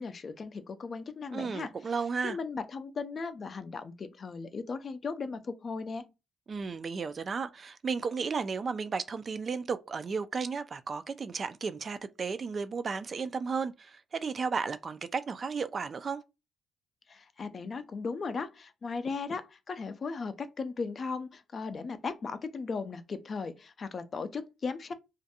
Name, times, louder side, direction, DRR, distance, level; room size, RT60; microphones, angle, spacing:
voice 1, 0.0-1.7 2.2-6.1 17.1-24.9, left 4 dB, 45° left, 0.4 m, -37 dB
voice 2, 1.3-2.4 6.5-16.2, right 5 dB, 40° right, 0.3 m, -34 dB
2.4 x 2.2 x 2.7 m
cardioid pair, 90°, 0 cm